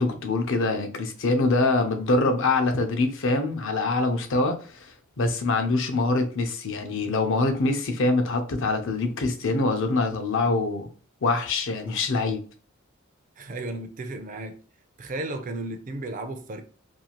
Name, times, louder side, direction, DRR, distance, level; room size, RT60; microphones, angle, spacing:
voice 1, 0.0-10.9 11.2-12.4, left 3 dB, 60° left, 0.6 m, -24 dB
voice 2, 13.4-14.6 15.0-16.6, right 2 dB, 40° right, 0.4 m, -34 dB
2.6 x 2.4 x 2.9 m
head